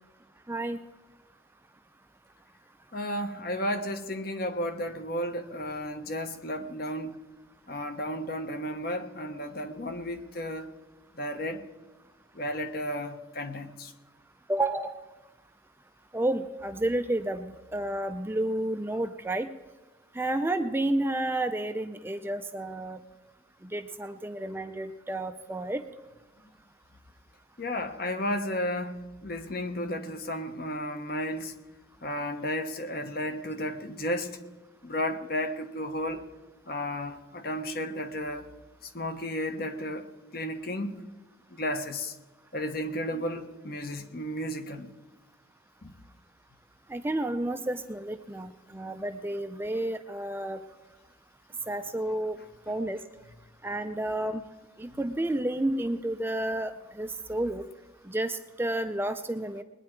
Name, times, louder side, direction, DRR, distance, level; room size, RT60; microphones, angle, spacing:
voice 1, 0.5-0.8 14.5-14.9 16.1-19.5 20.2-23.0 23.7-25.8 46.9-50.6 51.7-52.4 52.7-53.0 53.6-54.4 54.8-56.7 57.0-57.6 58.1-59.6, right 1 dB, 10° right, 0.4 m, -30 dB
voice 2, 2.9-7.2 7.7-10.7 11.1-11.6 12.3-13.9 27.6-31.5 32.0-34.4 34.8-36.2 36.7-38.5 38.8-40.1 40.3-41.0 41.5-42.1 42.5-44.9 45.8-45.9, left 1 dB, 50° left, 1.1 m, -33 dB
20.5 x 9.7 x 4.5 m
head